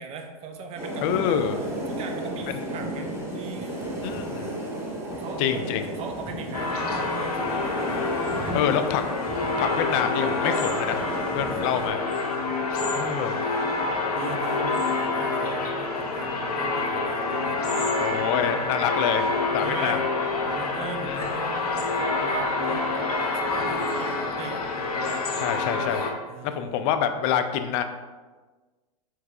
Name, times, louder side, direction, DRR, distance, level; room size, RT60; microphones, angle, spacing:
voice 1, 0.0-3.8 5.1-8.8 10.2-10.3 11.4-13.1 14.1-18.0 19.6-20.0 20.5-26.8, right 5 dB, 35° right, 4 dB, 0.5 m, -40 dB
sound 1, 0.7-11.9, right 1 dB, 15° right, 0.9 m, -34 dB
voice 2, 1.0-1.6 4.0-4.5 5.4-5.8 8.5-9.0 9.6-11.0 11.3-12.0 12.9-13.3 18.0-20.0 21.0-21.2 25.4-26.1 26.4-27.8, left 9 dB, 40° left, 9 dB, 0.4 m, -26 dB
sound 2, 6.5-26.1, left 3 dB, 85° left, 0.7 m, -27 dB
4.6 x 3.2 x 2.4 m, 1.3 s
hypercardioid pair, 105°, 19 cm